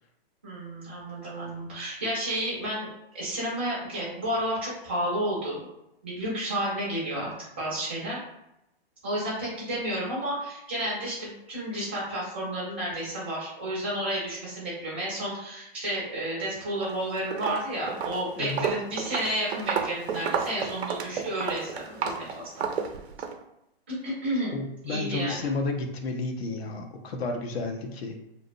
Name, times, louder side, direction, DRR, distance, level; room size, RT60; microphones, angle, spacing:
voice 1, 0.4-2.9 3.1-5.6 6.0-8.2 9.0-22.6 24.0-24.5 24.9-25.5, right 1 dB, 10° right, -8 dB, 0.3 m, -31 dB
Walk footsteps, 16.7-17.0 17.3-23.4, right 6 dB, 90° right, 0.5 m, -31 dB
voice 2, 24.5-28.2, left 3 dB, 75° left, 4 dB, 0.6 m, -31 dB
2.7 x 2.0 x 2.5 m, 0.85 s
hypercardioid pair, 165°, 31 cm